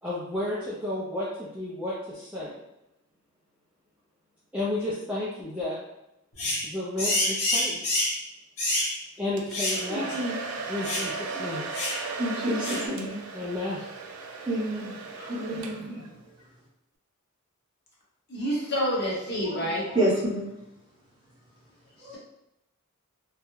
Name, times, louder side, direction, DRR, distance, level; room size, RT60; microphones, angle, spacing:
voice 1, 0.0-2.5 4.5-5.8 6.6-7.8 9.2-10.2 10.7-11.7 13.3-13.8, left 1 dB, 5° right, -9 dB, 0.3 m, -32 dB
sound 1, 6.4-6.7 7.0-8.2 8.6-8.9 9.5-9.8 10.1-10.2 10.8-11.1 11.7-12.0 12.6-12.9, left 1 dB, 85° left, 0.7 m, -27 dB
Domestic sounds home sounds, 9.4-16.1, right 4 dB, 90° right, 0.3 m, -36 dB
voice 2, 9.9-10.4 12.0-13.2 14.4-16.1 19.4-20.5 22.0-22.2, right 1 dB, 20° right, -8 dB, 0.8 m, -29 dB
voice 3, 18.3-19.8, equal, 50° left, -5 dB, 0.8 m, -28 dB
2.3 x 2.0 x 3.0 m, 0.86 s
head